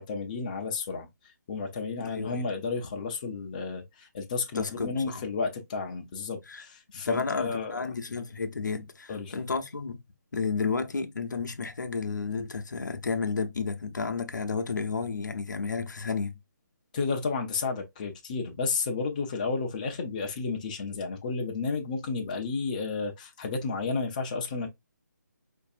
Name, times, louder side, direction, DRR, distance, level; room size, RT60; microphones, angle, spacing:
voice 1, 0.0-7.8 9.1-9.3 16.9-24.7, left 4 dB, 25° left, 0.5 m, -32 dB
voice 2, 2.0-2.4 4.5-5.3 6.5-6.6 6.9-10.0 10.3-16.4, left 4 dB, 75° left, 0.7 m, -32 dB
4.5 x 2.6 x 2.4 m
figure-of-eight pair, 160°, 10 cm